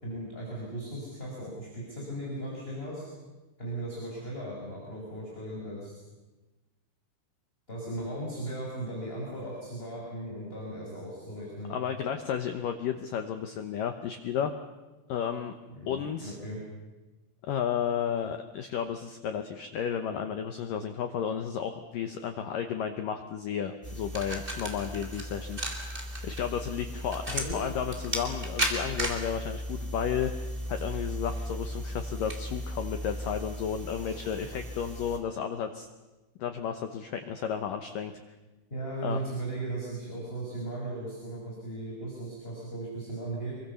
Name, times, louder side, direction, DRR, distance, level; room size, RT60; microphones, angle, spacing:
voice 1, 0.0-3.0 3.6-5.9 7.7-11.8 15.7-16.6 27.3-27.6 38.7-43.5, right 1 dB, 10° left, -3 dB, 5.7 m, -37 dB
voice 2, 11.7-14.5 15.1-15.5 15.9-16.4 17.4-25.7 26.2-35.9 36.4-38.1 39.0-39.2, left 8 dB, 80° left, 7 dB, 1.9 m, -33 dB
sound 1, 23.8-35.2, equal, 15° right, 2.7 m, -35 dB
26.5 x 23.5 x 7.0 m, 1.1 s
omnidirectional pair, 5.4 m